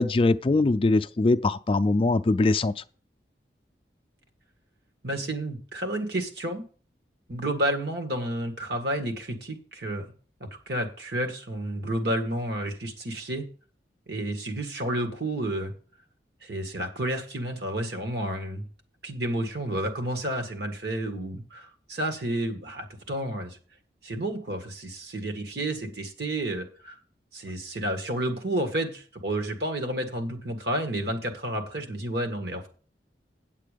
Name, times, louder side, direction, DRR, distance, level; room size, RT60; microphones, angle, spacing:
voice 1, 0.0-2.7, left 2 dB, 30° left, 0.4 m, -22 dB
voice 2, 5.0-6.6 7.3-10.1 10.4-13.5 14.1-15.7 16.4-18.6 19.0-23.6 24.0-27.0 27.3-32.7, right 1 dB, 70° right, 1.8 m, -31 dB
8.4 x 8.3 x 5.1 m
head